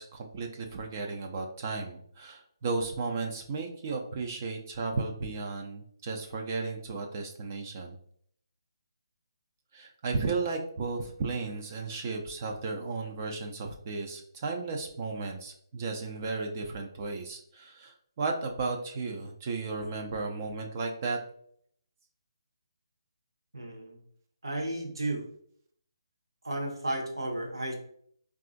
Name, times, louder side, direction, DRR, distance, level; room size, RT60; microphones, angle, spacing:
voice 1, 0.0-8.0 9.7-21.2, right 4 dB, 35° right, 3 dB, 0.4 m, -34 dB
voice 2, 23.5-24.0 24.4-25.3 26.4-27.7, right 1 dB, 90° right, 1 dB, 0.8 m, -33 dB
3.7 x 2.4 x 2.4 m, 0.65 s
hypercardioid pair, 155°, 2 cm